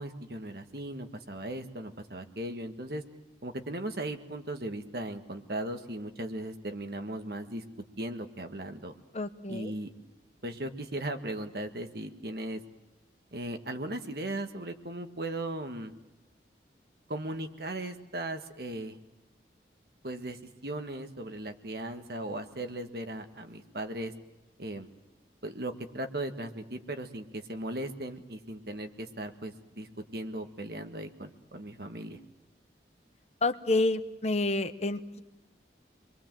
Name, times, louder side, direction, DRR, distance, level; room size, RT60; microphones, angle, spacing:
voice 1, 0.0-3.0 3.4-7.6 8.0-8.9 9.5-9.9 10.4-12.6 13.3-15.9 17.1-19.0 20.0-24.1 24.6-24.9 25.4-32.2, right 1 dB, 60° right, 6 dB, 1.7 m, -37 dB
voice 2, 9.1-9.7 33.4-35.2, left 2 dB, 40° left, 10 dB, 1.0 m, -29 dB
29.0 x 22.5 x 7.7 m, 0.99 s
head